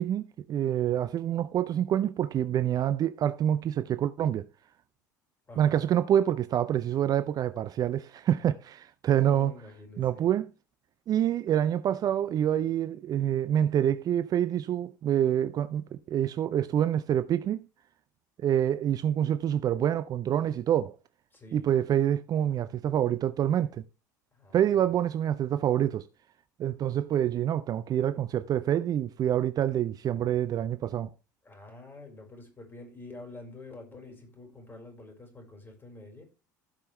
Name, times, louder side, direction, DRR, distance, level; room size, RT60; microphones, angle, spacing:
voice 1, 0.0-4.5 5.6-9.5 10.0-10.5 11.1-17.6 18.4-20.9 21.5-23.8 24.5-26.0 26.6-31.1, right 10 dB, 40° right, 0.5 m, -27 dB
voice 2, 5.5-5.8 9.1-10.3 21.3-21.7 24.3-25.2 31.4-36.2, left 2 dB, 20° left, 4.7 m, -48 dB
16.0 x 5.5 x 3.3 m
figure-of-eight pair, 65°, 10 cm